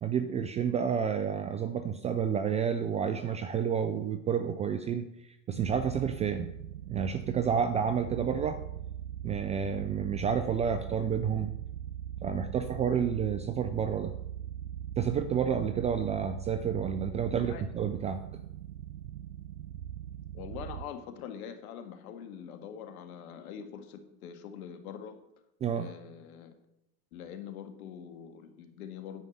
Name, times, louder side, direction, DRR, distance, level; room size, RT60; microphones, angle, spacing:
voice 1, 0.0-5.0 5.5-6.5 6.9-8.6 9.2-11.5 12.2-14.1 15.0-18.2 25.6-25.9, right 7 dB, 15° right, 10 dB, 0.3 m, -30 dB
sound 1, 5.6-20.9, right 10 dB, 90° right, 0.7 m, -41 dB
voice 2, 17.3-17.8 20.3-25.2 25.7-26.6 27.1-29.2, left 8 dB, 65° left, 6 dB, 1.9 m, -44 dB
10.0 x 5.3 x 8.0 m, 0.83 s
hypercardioid pair, 95°, 47 cm